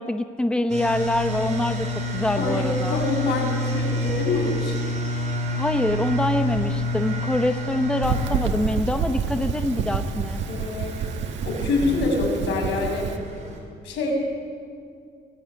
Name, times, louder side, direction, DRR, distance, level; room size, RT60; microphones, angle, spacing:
voice 1, 0.0-3.0 5.6-10.4, left 1 dB, 5° left, 8 dB, 0.9 m, -25 dB
sound 1, 0.7-13.6, left 1 dB, 40° right, 5.5 m, -29 dB
voice 2, 2.3-4.8 10.5-11.1 11.5-13.5 13.8-14.1, left 3 dB, 90° left, 1 dB, 6.8 m, -26 dB
sound 2, 8.0-13.2, right 6 dB, 85° right, 1.6 m, -28 dB
23.0 x 18.0 x 9.6 m, 2.3 s
cardioid pair, 140°, 18 cm